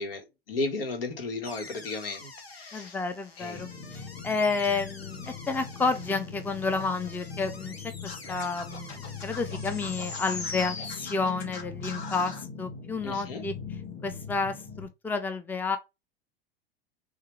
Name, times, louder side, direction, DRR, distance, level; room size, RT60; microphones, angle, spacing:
voice 1, 0.0-3.0 3.4-3.7 13.0-13.4, left 3 dB, 65° left, 1.7 m, -34 dB
sound 1, 1.4-11.7, left 3 dB, 85° left, 1.0 m, -44 dB
voice 2, 2.7-7.8 8.0-13.5 14.0-15.8, left 4 dB, 5° left, 0.6 m, -30 dB
sound 2, 3.5-14.9, left 5 dB, 25° left, 1.5 m, -41 dB
Scratching (performance technique), 8.1-12.4, left 5 dB, 40° left, 2.3 m, -42 dB
6.5 x 2.6 x 3.2 m
figure-of-eight pair, 85°, 30 cm